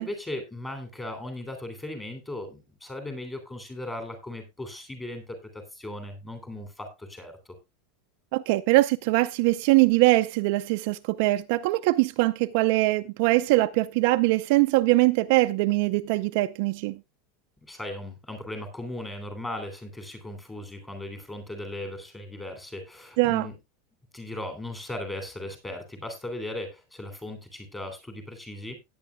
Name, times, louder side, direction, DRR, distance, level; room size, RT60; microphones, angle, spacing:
voice 1, 0.0-7.4 17.7-23.6 24.1-28.8, left 1 dB, 10° left, 3.1 m, -37 dB
voice 2, 8.3-17.0 23.2-23.5, right 19 dB, 50° right, 0.5 m, -22 dB
16.5 x 9.5 x 2.3 m
supercardioid pair, 165°, 0 cm